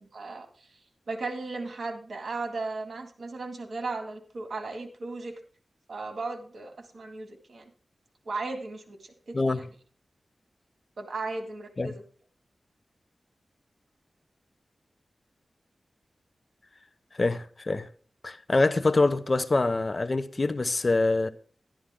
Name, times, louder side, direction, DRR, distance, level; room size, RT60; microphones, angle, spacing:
voice 1, 0.1-0.7 1.1-5.3 5.9-7.7 8.3-9.7 11.0-12.0, right 3 dB, 70° right, 2.0 m, -36 dB
voice 2, 17.2-17.9 18.2-21.3, left 2 dB, 40° left, 0.7 m, -25 dB
12.0 x 11.5 x 3.6 m
wide cardioid pair, 75°, 0 cm